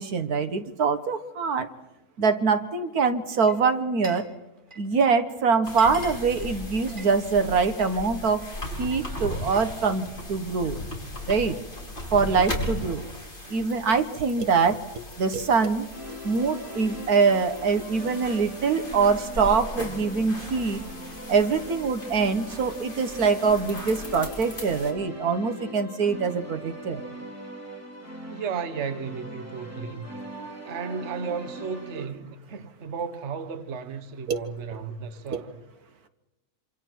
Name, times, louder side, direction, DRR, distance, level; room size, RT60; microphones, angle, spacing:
voice 1, 0.0-1.7 2.2-4.2 4.8-8.5 8.8-10.8 11.3-11.6 12.1-13.1 13.5-20.8 21.3-27.0 30.3-30.7 34.3-34.4 34.7-34.8 35.3-35.4, right 5 dB, 70° right, 1.8 m, -24 dB
Glass, 3.3-4.3 4.6-5.0 5.4-5.5 5.7-8.0 8.3-9.1, right 1 dB, 30° right, 3.5 m, -44 dB
sound 1, 5.6-24.9, left 1 dB, 30° left, 5.2 m, -38 dB
sound 2, 15.9-32.1, equal, 10° right, 3.9 m, -41 dB
voice 2, 28.3-30.1 30.6-35.6, right 6 dB, 50° right, 1.3 m, -34 dB
27.0 x 27.0 x 4.6 m
omnidirectional pair, 1.7 m